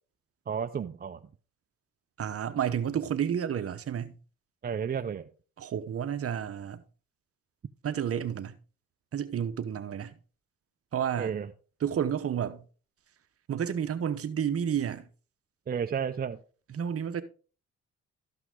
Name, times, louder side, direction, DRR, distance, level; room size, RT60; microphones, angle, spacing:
voice 1, 0.5-1.2 4.6-5.3 11.2-11.5 15.7-16.4, right 7 dB, 30° right, 0.5 m, -32 dB
voice 2, 2.2-4.2 5.6-6.8 7.8-8.6 9.1-10.1 10.9-11.4 11.8-12.6 13.5-15.1 16.7-17.2, right 8 dB, 50° right, 1.0 m, -31 dB
12.5 x 5.9 x 3.6 m
cardioid pair, 90°, 30 cm